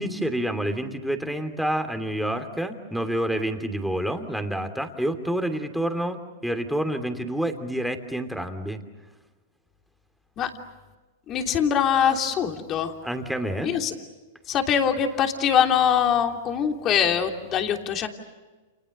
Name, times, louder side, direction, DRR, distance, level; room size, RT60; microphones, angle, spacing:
voice 1, 0.0-8.8 13.0-13.8, right 1 dB, ahead, 6 dB, 2.9 m, -28 dB
voice 2, 11.3-12.9 13.6-13.9 14.5-18.1, left 8 dB, 35° left, 4 dB, 3.2 m, -23 dB
29.5 x 29.0 x 6.7 m, 1.3 s
hypercardioid pair, 110°, 0 cm